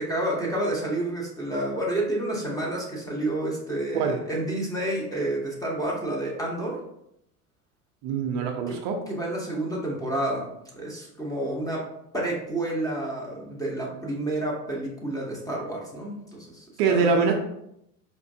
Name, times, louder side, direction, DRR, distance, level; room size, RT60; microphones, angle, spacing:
voice 1, 0.0-6.8 8.7-8.8 9.1-10.5 10.7-11.8 12.1-17.2, right 1 dB, 5° left, -2 dB, 0.9 m, -29 dB
voice 2, 8.0-9.0 16.8-17.3, right 5 dB, 50° right, 3 dB, 0.6 m, -23 dB
4.3 x 2.5 x 2.6 m, 0.79 s
hypercardioid pair, 105°, 47 cm